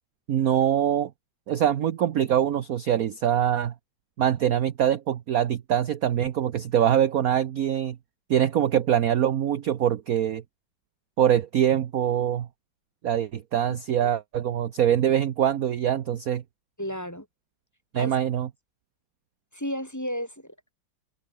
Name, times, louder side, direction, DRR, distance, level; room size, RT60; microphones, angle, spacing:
voice 1, 0.3-1.1 1.5-3.7 4.2-8.0 8.3-10.4 11.2-12.5 13.0-16.4 17.9-18.5, right 10 dB, 55° right, 1.2 m, -23 dB
voice 2, 16.8-17.3 18.0-18.1 19.5-20.7, equal, 10° left, 3.4 m, -33 dB
omnidirectional pair, 2.2 m